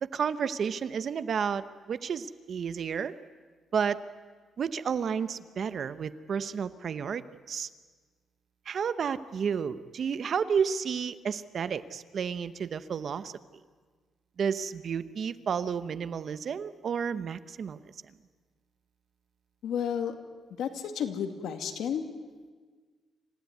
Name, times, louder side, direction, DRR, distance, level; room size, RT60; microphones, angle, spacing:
voice 1, 0.0-3.1 3.7-4.0 4.6-7.2 7.5-7.7 8.7-13.3 14.4-17.8, right 6 dB, 50° right, 13 dB, 0.9 m, -31 dB
voice 2, 19.6-20.1 20.6-22.0, left 8 dB, 80° left, 6 dB, 2.2 m, -32 dB
27.0 x 15.5 x 9.5 m, 1.5 s
cardioid pair, 140°, 0 cm